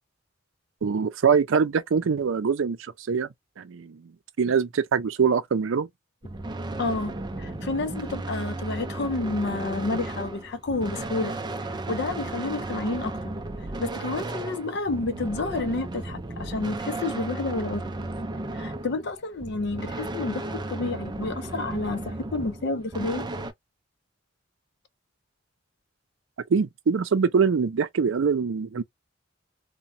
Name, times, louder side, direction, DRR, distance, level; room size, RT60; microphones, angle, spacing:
voice 1, 0.8-3.3 3.6-4.1 4.4-5.9 26.5-28.8, right 6 dB, 85° right, 0.5 m, -23 dB
sound 1, 6.2-23.5, right 2 dB, 20° right, 0.4 m, -34 dB
voice 2, 6.8-11.3 11.7-13.1 13.8-18.0 18.5-23.3, left 2 dB, 60° left, 0.5 m, -30 dB
2.9 x 2.1 x 2.6 m
head